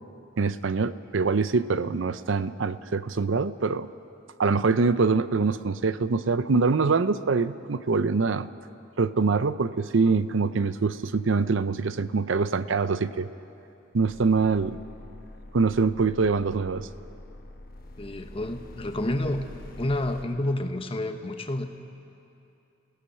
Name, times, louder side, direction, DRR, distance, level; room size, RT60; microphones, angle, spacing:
voice 1, 0.4-3.9 4.4-8.5 9.0-13.3 13.9-14.8 15.5-16.9, right 4 dB, 65° right, 14 dB, 0.6 m, -24 dB
sound 1, 13.9-20.3, left 1 dB, 45° left, 1.2 m, -45 dB
voice 2, 18.0-19.4 19.8-21.7, left 1 dB, 30° left, 6 dB, 1.0 m, -29 dB
29.0 x 17.0 x 5.7 m, 2.8 s
head